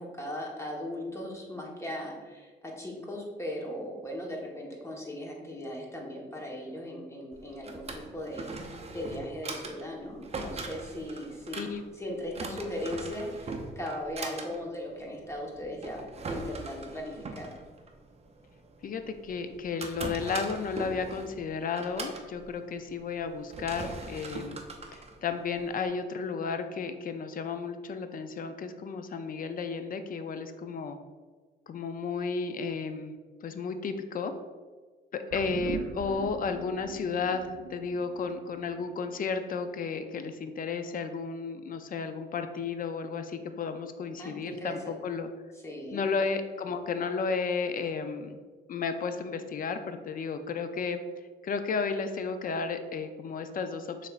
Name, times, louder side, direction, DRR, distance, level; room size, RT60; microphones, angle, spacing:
voice 1, 0.0-11.6 11.9-16.0 16.3-17.5 44.2-45.0 45.5-46.1, left 1 dB, 15° left, -2 dB, 1.1 m, -38 dB
Drawer open or close, 7.3-25.9, right 3 dB, 35° right, 0.6 m, -41 dB
voice 2, 18.8-24.6 24.9-31.0 31.7-33.1 33.4-34.3 35.1-45.3 45.9-48.4 48.7-51.0 51.4-54.1, left 5 dB, 45° left, 9 dB, 0.4 m, -33 dB
sound 1, 35.3-39.9 40.2-40.3, right 5 dB, 80° right, 0.5 m, -42 dB
6.4 x 3.3 x 2.4 m, 1.4 s
cardioid pair, 90°, 20 cm